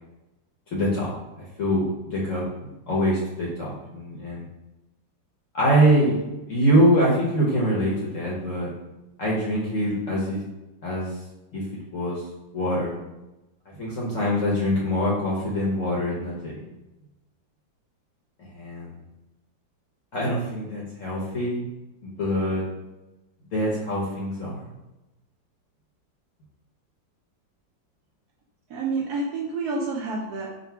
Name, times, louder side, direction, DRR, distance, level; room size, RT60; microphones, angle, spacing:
voice 1, 0.7-4.4 5.5-6.1 6.5-8.7 9.2-10.4 10.8-11.1 11.5-11.6 11.9-12.2 12.5-12.9 13.8-16.6 18.4-18.9 20.1-21.7 22.0-22.6 23.5-24.6, equal, 60° left, -5 dB, 0.9 m, -24 dB
voice 2, 28.7-30.5, right 3 dB, 70° right, -2 dB, 0.9 m, -28 dB
3.9 x 2.2 x 4.3 m, 1.0 s
omnidirectional pair, 2.0 m